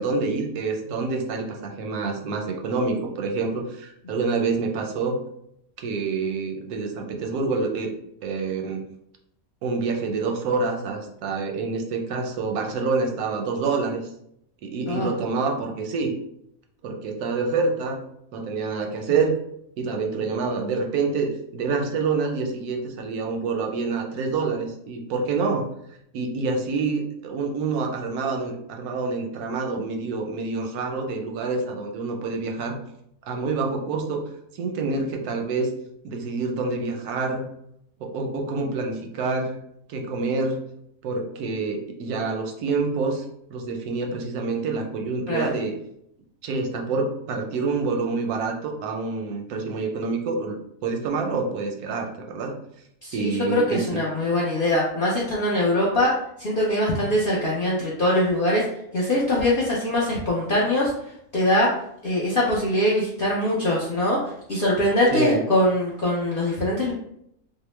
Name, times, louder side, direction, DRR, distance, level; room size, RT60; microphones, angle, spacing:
voice 1, 0.0-5.2 5.8-7.9 8.2-8.8 9.6-14.1 14.6-16.1 16.8-18.0 18.3-19.4 19.8-25.7 26.1-32.8 33.3-34.2 34.5-35.7 36.0-37.5 38.0-39.6 39.9-40.6 41.0-45.7 46.4-50.6 50.8-52.5 53.1-54.0 65.1-65.4, right 4 dB, 85° right, 2 dB, 1.1 m, -27 dB
voice 2, 53.0-58.6 58.9-60.9 61.3-61.7 62.0-64.2 64.5-66.9, left 1 dB, 65° left, -5 dB, 0.5 m, -22 dB
2.8 x 2.0 x 3.0 m, 0.74 s
omnidirectional pair, 1.6 m